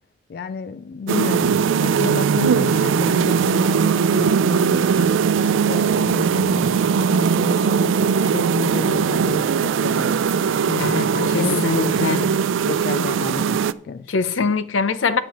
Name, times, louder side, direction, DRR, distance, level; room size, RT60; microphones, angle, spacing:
voice 1, 0.3-5.3 5.6-6.8 7.0-12.3 12.6-14.1, left 4 dB, 50° left, 0.3 m, -31 dB
sound 1, 1.1-13.7, right 6 dB, 80° right, 0.4 m, -20 dB
voice 2, 10.8-12.3 14.1-15.2, left 4 dB, 85° left, 0.7 m, -23 dB
12.5 x 8.9 x 3.0 m
head